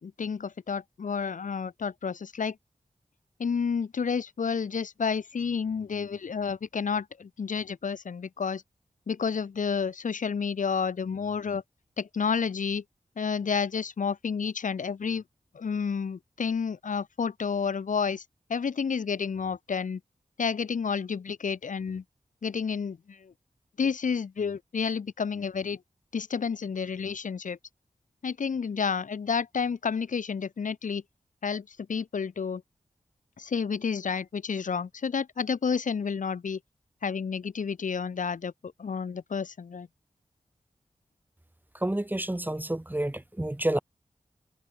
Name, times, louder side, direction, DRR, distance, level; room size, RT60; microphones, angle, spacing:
voice 1, 0.0-2.6 3.4-8.6 9.1-11.6 12.0-12.8 13.2-15.2 15.5-18.2 18.5-20.0 20.4-22.0 22.4-23.3 23.8-25.8 26.1-27.6 28.2-31.0 31.4-32.6 33.4-36.6 37.0-39.9, left 6 dB, 80° left, 1.5 m, -30 dB
voice 2, 41.8-43.8, right 1 dB, 15° right, 2.6 m, -29 dB
wide cardioid pair, 95°, 13 cm